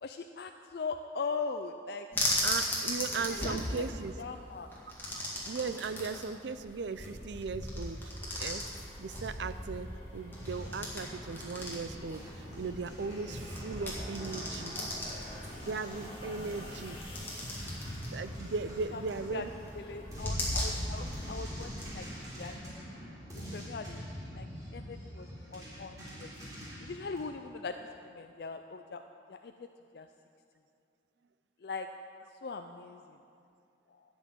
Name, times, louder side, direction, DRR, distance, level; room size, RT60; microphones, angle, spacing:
voice 1, 0.0-2.1 3.3-3.8 4.2-4.7 18.9-19.0 19.3-19.4 19.7-22.1 22.4-22.6 23.5-24.0 24.3-24.5 24.7-26.3 26.8-27.8 28.1-29.0 29.3-29.5 29.9-30.1 31.6-31.9 32.4-33.0, left 4 dB, 60° left, 7 dB, 0.4 m, -40 dB
sound 1, 2.1-21.9, left 1 dB, 10° left, 2.1 m, -38 dB
voice 2, 2.4-4.2 5.1-8.0 8.4-8.6 9.0-12.2 12.6-14.8 15.7-17.0 18.1-19.5, right 4 dB, 80° right, 12 dB, 0.5 m, -37 dB
sound 2, 6.9-22.6, equal, 30° left, 2.2 m, -49 dB
sound 3, 10.4-27.3, equal, 20° right, 3.6 m, -45 dB
12.5 x 6.3 x 8.5 m, 2.6 s
head